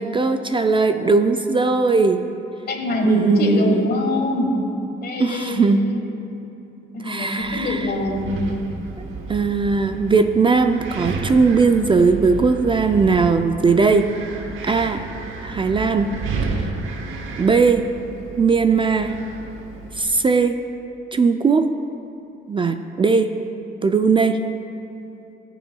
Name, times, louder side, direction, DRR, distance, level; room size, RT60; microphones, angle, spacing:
voice 1, 0.0-2.3 3.0-3.9 5.2-5.9 7.0-7.9 9.3-14.1 14.6-15.1 15.4-16.1 16.5-16.7 17.4-17.9 18.4-19.2 19.9-20.6 21.1-21.8 22.5-23.4 23.8-24.4, right 4 dB, 25° right, 8 dB, 0.3 m, -19 dB
voice 2, 2.7-4.5 5.0-6.1 6.9-8.5, left 1 dB, 55° left, 2 dB, 1.5 m, -23 dB
Wind, 7.4-20.0, right 3 dB, 85° right, 0.9 m, -32 dB
17.5 x 6.1 x 2.3 m, 2.9 s
cardioid pair, 90°, 20 cm